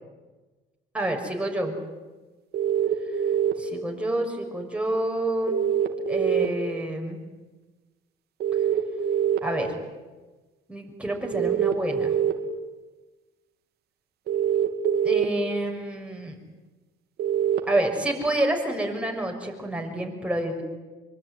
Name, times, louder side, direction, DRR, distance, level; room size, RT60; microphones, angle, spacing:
voice 1, 0.9-1.8 3.6-5.6 6.1-7.2 9.4-9.8 10.7-12.1 15.0-16.3 17.7-20.6, right 1 dB, 5° right, 1 dB, 6.2 m, -28 dB
sound 1, 2.5-3.5 5.5-6.5 8.4-9.4 11.3-12.3 14.3-15.2 17.2-17.6, right 9 dB, 70° right, 2.9 m, -23 dB
25.0 x 24.0 x 9.7 m, 1.2 s
cardioid pair, 110°, 17 cm